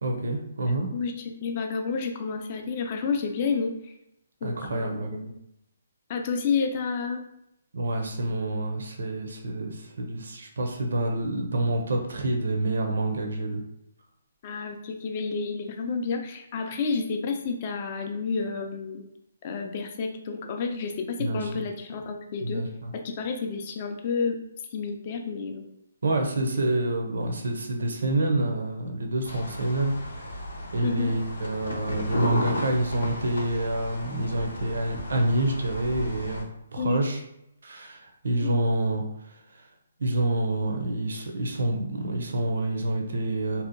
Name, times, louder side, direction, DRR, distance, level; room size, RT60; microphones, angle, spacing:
voice 1, 0.0-0.9 4.4-5.2 7.7-13.6 21.2-21.5 22.4-22.9 26.0-30.3 30.7-36.5 36.7-37.2 37.6-39.6 40.0-43.6, right 1 dB, 75° right, 3 dB, 0.5 m, -27 dB
voice 2, 0.7-3.9 4.4-5.4 6.1-7.2 14.4-19.1 19.4-22.6 22.9-24.4 24.7-25.6 30.8-31.1 36.8-37.0 38.3-38.6, left 5 dB, 30° left, 4 dB, 0.3 m, -30 dB
sound 1, 29.2-36.4, left 1 dB, 90° left, 0.7 m, -34 dB
2.7 x 2.1 x 2.6 m, 0.81 s
hypercardioid pair, 165°, 0 cm